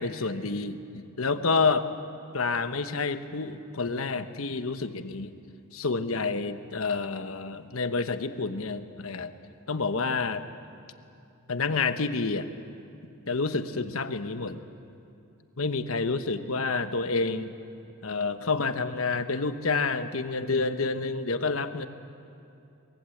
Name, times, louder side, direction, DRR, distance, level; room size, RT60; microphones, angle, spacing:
voice 1, 0.0-1.9 2.3-5.3 5.7-9.3 9.7-10.5 11.5-12.5 13.3-14.6 15.6-17.5 18.0-21.9, left 4 dB, 75° left, 9 dB, 1.1 m, -29 dB
24.0 x 21.5 x 7.9 m, 2.6 s
head